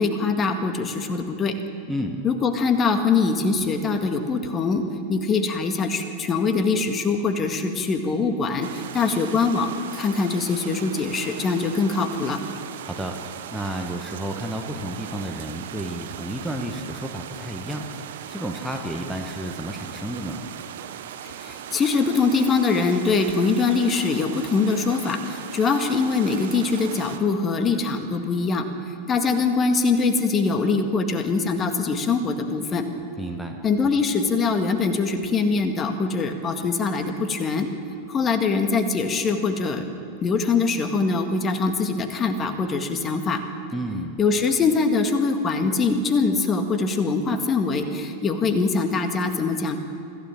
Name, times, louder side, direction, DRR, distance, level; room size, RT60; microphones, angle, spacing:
voice 1, 0.0-1.6 2.2-12.4 21.4-32.9 33.6-37.7 38.1-39.8 40.2-43.4 44.2-49.8, left 4 dB, 25° left, 7 dB, 1.8 m, -23 dB
sound 1, 8.6-27.2, right 9 dB, 55° right, 1.2 m, -38 dB
voice 2, 12.8-13.2 13.5-20.4 33.2-33.6 43.7-44.1, right 1 dB, ahead, 1 dB, 1.5 m, -31 dB
25.5 x 15.5 x 7.4 m, 2.5 s
figure-of-eight pair, 90°, 0 cm